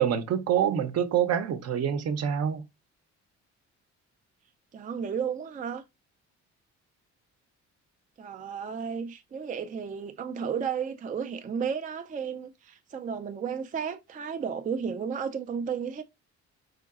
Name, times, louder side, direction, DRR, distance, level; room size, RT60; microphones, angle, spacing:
voice 1, 0.0-2.6, right 9 dB, 55° right, 0.7 m, -26 dB
voice 2, 4.7-5.8 8.2-16.0, right 7 dB, 25° right, 0.4 m, -33 dB
5.0 x 3.7 x 2.4 m
cardioid pair, 90°, 30 cm